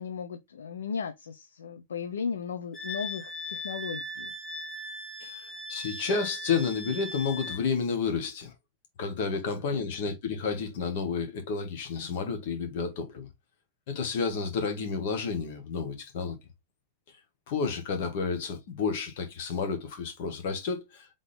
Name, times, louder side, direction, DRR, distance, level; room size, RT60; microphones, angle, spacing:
voice 1, 0.0-4.3 9.6-9.9, left 6 dB, 70° left, 0.5 m, -36 dB
Wind instrument woodwind instrument, 2.7-7.6, left 1 dB, 15° left, 1.4 m, -38 dB
voice 2, 5.2-8.5 9.0-13.3 13.9-16.4 17.5-21.1, left 5 dB, 55° left, 1.4 m, -31 dB
3.8 x 3.6 x 3.4 m
figure-of-eight pair, 90°, 0 cm